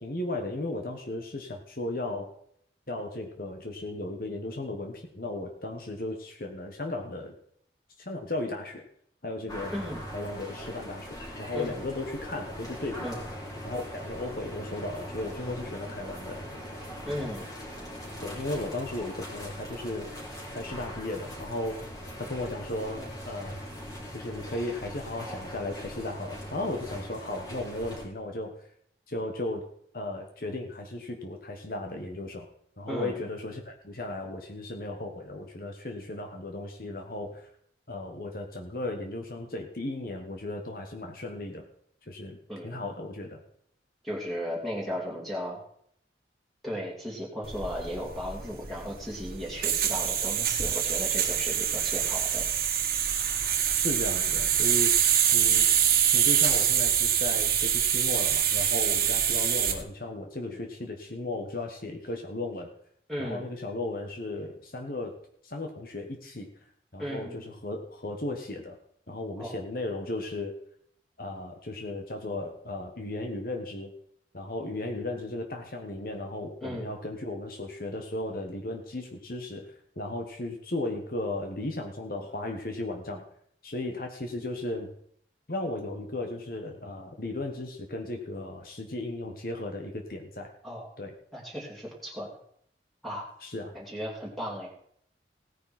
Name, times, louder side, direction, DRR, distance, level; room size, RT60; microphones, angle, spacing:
voice 1, 0.0-2.3 2.9-7.3 8.0-8.8 9.2-9.8 10.1-13.1 13.6-16.5 18.2-20.1 20.5-21.8 22.2-23.6 24.1-28.6 29.1-29.6 29.9-32.5 32.8-37.5 37.9-41.6 42.1-42.4 42.6-43.4 53.7-55.0 55.3-55.7 56.1-62.7 63.2-65.2 65.4-66.5 66.9-68.8 69.1-70.5 71.2-73.9 74.3-83.2 83.6-84.9 85.5-90.5 91.0-91.1 93.4-93.7, left 2 dB, 50° left, 3 dB, 1.5 m, -35 dB
sound 1, 9.5-28.0, equal, 20° left, 3.7 m, -41 dB
voice 2, 9.7-10.0 11.5-11.7 13.0-13.2 17.1-17.4 23.0-23.1 32.9-33.2 42.5-42.8 44.0-45.6 46.6-52.4 63.1-63.4 67.0-67.4 69.4-69.6 76.6-76.9 90.6-90.9 91.3-92.3 93.0-93.3 93.7-94.7, equal, ahead, -5 dB, 2.7 m, -35 dB
sound 2, 47.4-59.8, right 9 dB, 50° right, 1.8 m, -25 dB
16.5 x 10.0 x 4.4 m, 0.67 s
head